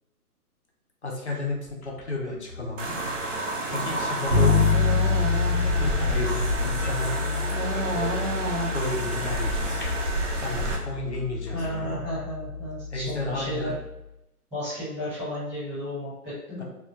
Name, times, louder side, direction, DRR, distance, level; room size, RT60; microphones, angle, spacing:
voice 1, 1.0-3.0 3.7-4.7 5.8-7.2 7.9-8.3 8.7-9.8 10.4-12.0 12.9-13.7 16.6-16.7, left 2 dB, 50° left, -2 dB, 0.4 m, -32 dB
sound 1, 1.2-12.6, left 3 dB, 90° left, 0.7 m, -43 dB
sound 2, 2.8-10.8, right 2 dB, 55° right, 0.5 m, -29 dB
Bass guitar, 4.3-14.0, left 4 dB, 85° right, 0.9 m, -27 dB
voice 2, 11.5-13.7 14.5-16.6, equal, 5° right, -16 dB, 0.9 m, -33 dB
2.3 x 2.1 x 2.7 m, 0.89 s
hypercardioid pair, 180°, 46 cm